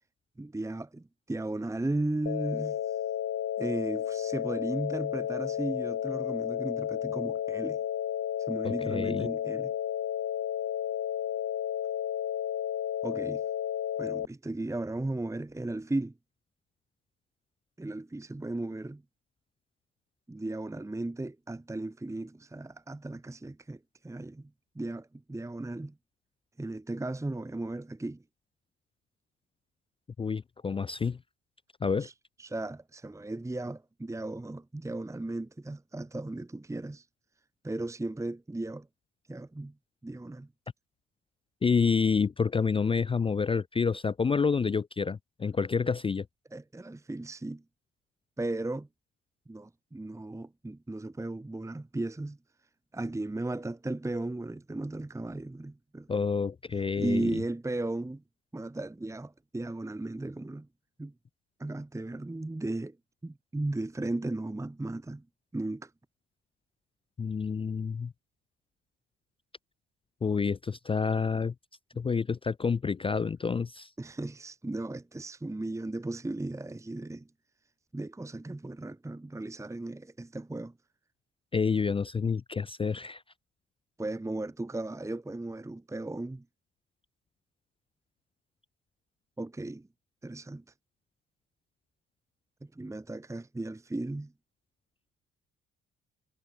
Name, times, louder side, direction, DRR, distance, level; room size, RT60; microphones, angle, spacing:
voice 1, 0.4-2.8 3.6-7.8 8.5-9.7 13.0-13.4 14.0-16.1 17.8-19.0 20.3-24.5 24.7-25.9 26.6-28.2 32.0-32.1 32.4-37.1 37.6-38.9 39.3-39.7 40.0-40.5 46.5-47.6 48.4-48.9 49.5-52.4 52.9-56.1 57.0-58.2 58.5-60.7 61.0-61.1 61.6-63.0 63.2-65.2 65.5-65.9 74.0-77.3 77.9-80.7 84.0-86.4 89.4-89.9 90.2-90.6 92.6-94.3, right 2 dB, 10° right, 1.0 m, -36 dB
sound 1, 2.3-14.3, left 10 dB, 50° left, 1.2 m, -32 dB
voice 2, 8.6-9.3 30.2-31.2 31.8-32.1 41.6-46.3 56.1-57.4 67.2-68.1 70.2-71.5 72.0-73.9 81.5-83.2, left 5 dB, 20° left, 0.3 m, -28 dB
hypercardioid pair, 55°, 30 cm